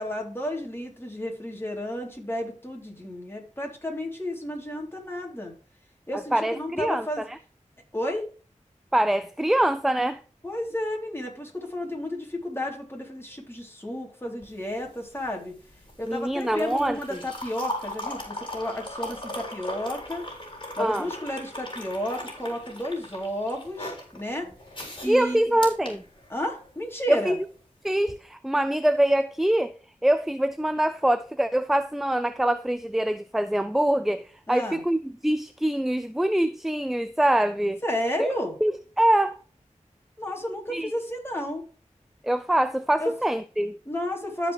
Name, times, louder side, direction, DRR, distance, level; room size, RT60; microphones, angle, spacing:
voice 1, 0.0-5.5 6.1-7.2 7.9-8.3 10.4-15.5 16.0-20.3 20.8-24.5 25.0-25.4 26.3-27.4 34.5-34.8 37.8-38.5 40.2-41.6 43.0-43.1 43.9-44.5, left 1 dB, 20° left, 3.7 m, -32 dB
voice 2, 6.3-7.4 8.9-10.2 16.1-17.2 20.8-21.1 25.1-26.0 27.1-27.4 27.8-29.7 30.0-37.8 38.2-38.3 38.6-39.3 40.7-40.9 42.2-43.8, right 1 dB, ahead, 0.5 m, -24 dB
sound 1, 14.4-26.7 28.0-28.2, left 1 dB, 40° left, 4.0 m, -38 dB
14.5 x 5.2 x 3.4 m
wide cardioid pair, 40°, 13 cm